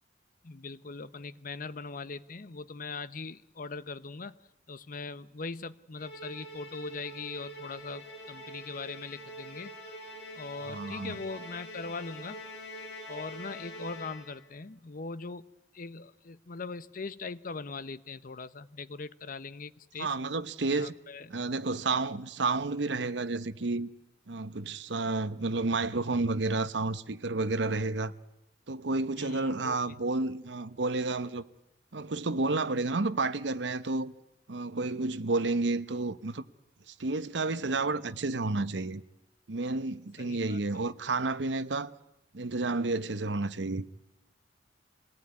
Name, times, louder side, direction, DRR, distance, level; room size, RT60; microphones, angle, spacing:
voice 1, 0.4-4.4 4.7-9.7 10.4-12.4 13.1-15.4 15.7-20.1 20.6-21.3 29.2-30.0 40.2-40.6, left 4 dB, 50° left, 0.8 m, -41 dB
Musical instrument, 6.0-14.5, equal, 70° left, 5.2 m, -44 dB
voice 2, 10.6-11.2 20.0-20.9 21.3-23.9 24.3-28.1 28.7-31.4 31.9-34.1 34.5-36.4 36.9-39.0 39.5-41.9 42.3-43.8, right 3 dB, 75° right, 0.9 m, -31 dB
25.5 x 18.0 x 9.6 m
head